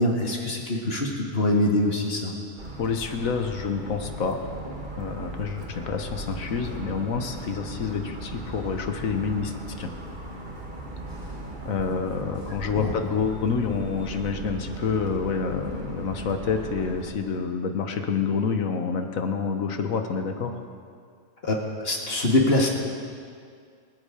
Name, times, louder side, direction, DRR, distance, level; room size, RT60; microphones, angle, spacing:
voice 1, 0.0-2.3 12.7-12.9 21.4-22.7, left 1 dB, 50° left, -1 dB, 2.1 m, -24 dB
Motor vehicle (road) / Siren, 2.6-17.1, right 2 dB, 40° right, 1.5 m, -37 dB
voice 2, 2.8-4.4 5.0-9.9 11.6-20.6, left 5 dB, 85° left, 6 dB, 1.5 m, -28 dB
24.0 x 8.4 x 5.0 m, 2.2 s
omnidirectional pair, 1.4 m